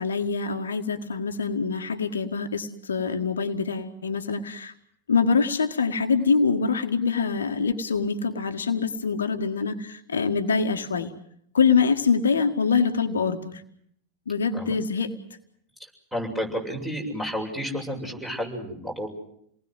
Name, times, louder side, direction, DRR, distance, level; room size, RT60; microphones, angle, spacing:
voice 1, 0.0-4.7 5.1-11.1 11.5-13.6 14.3-15.1, left 5 dB, 70° left, 6 dB, 1.7 m, -24 dB
voice 2, 16.1-19.1, equal, 5° right, 1 dB, 7.4 m, -31 dB
29.0 x 19.5 x 8.0 m, 0.70 s
figure-of-eight pair, 90°, 0 cm